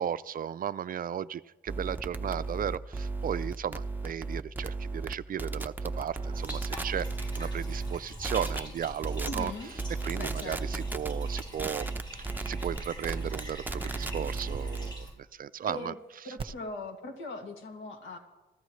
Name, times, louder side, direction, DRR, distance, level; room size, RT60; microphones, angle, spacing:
voice 1, 0.0-7.1 7.4-9.5 10.0-11.9 12.5-15.1 15.3-15.9, right 9 dB, 45° right, 15 dB, 0.4 m, -35 dB
sound 1, 1.7-8.0 8.2-8.6 9.0-9.5 9.8-14.9, right 3 dB, 10° right, 0.8 m, -35 dB
sound 2, 5.9-14.6 16.4-16.5, right 5 dB, 25° right, 1.2 m, -48 dB
Bathtub (filling or washing), 6.3-15.1, equal, 20° left, 7.2 m, -44 dB
voice 2, 9.2-9.7 10.2-10.9 15.7-16.0 16.2-18.2, left 2 dB, 75° left, 4 dB, 2.3 m, -40 dB
25.5 x 15.0 x 3.2 m, 1.2 s
cardioid pair, 90°, 20 cm